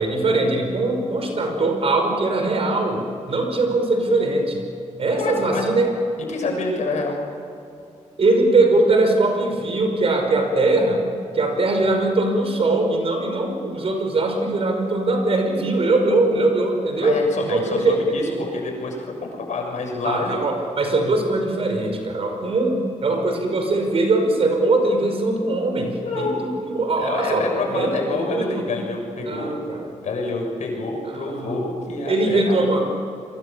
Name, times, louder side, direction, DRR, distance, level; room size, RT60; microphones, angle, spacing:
voice 1, 0.0-4.6 5.0-5.9 8.2-11.0 11.3-18.0 18.3-18.5 20.0-28.7 29.2-29.9 31.0-31.6 32.1-32.9, right 2 dB, 50° right, 4 dB, 5.4 m, -21 dB
voice 2, 5.2-5.6 6.3-7.2 17.0-20.4 26.0-26.4 27.0-29.5 30.0-32.6, left 3 dB, 70° left, 1 dB, 6.6 m, -27 dB
28.5 x 23.5 x 7.3 m, 2.5 s
wide cardioid pair, 120°, 12 cm